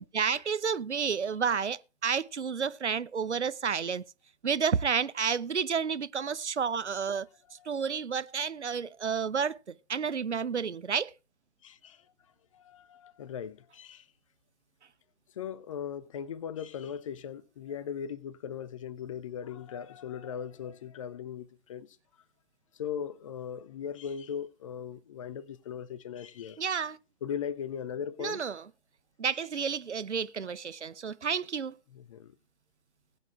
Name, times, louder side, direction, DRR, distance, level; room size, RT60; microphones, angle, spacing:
voice 1, 0.0-4.0 4.4-7.3 7.7-9.6 9.9-11.1 26.6-27.0 28.2-28.6 29.2-31.7, right 6 dB, 80° right, 0.6 m, -30 dB
voice 2, 11.6-12.0 12.5-14.1 15.4-22.0 22.7-26.6 27.2-28.5 29.3-29.6 31.9-32.3, left 8 dB, 30° left, 0.6 m, -39 dB
20.0 x 8.3 x 2.4 m
figure-of-eight pair, 125°, 34 cm